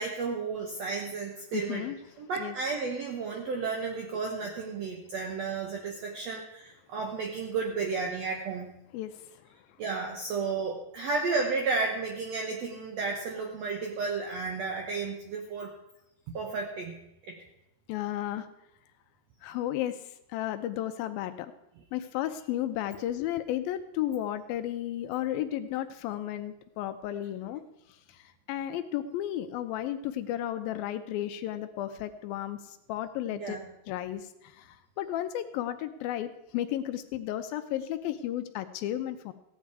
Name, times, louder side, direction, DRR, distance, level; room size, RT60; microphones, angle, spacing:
voice 1, 0.0-8.7 9.8-15.7 16.3-17.0 17.3-17.4 33.3-33.6, right 4 dB, 75° right, 2 dB, 1.5 m, -33 dB
voice 2, 1.5-2.0 2.4-2.6 8.9-9.5 17.9-18.5 19.4-21.5 21.9-27.6 27.9-33.6 33.9-39.3, left 12 dB, 80° left, 10 dB, 2.2 m, -33 dB
15.5 x 10.0 x 4.7 m, 0.86 s
omnidirectional pair, 4.5 m